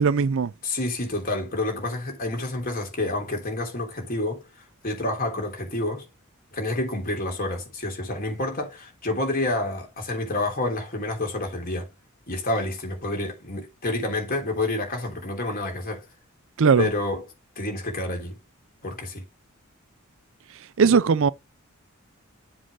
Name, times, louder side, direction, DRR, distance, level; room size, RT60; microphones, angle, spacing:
voice 1, 0.0-0.5 16.6-16.9 20.8-21.3, right 5 dB, 65° right, 0.5 m, -19 dB
voice 2, 0.6-4.4 4.8-6.1 6.5-11.9 12.3-16.1 16.8-17.2 17.5-18.4 18.8-19.2, left 2 dB, 45° left, 3.3 m, -28 dB
7.6 x 3.6 x 6.3 m
head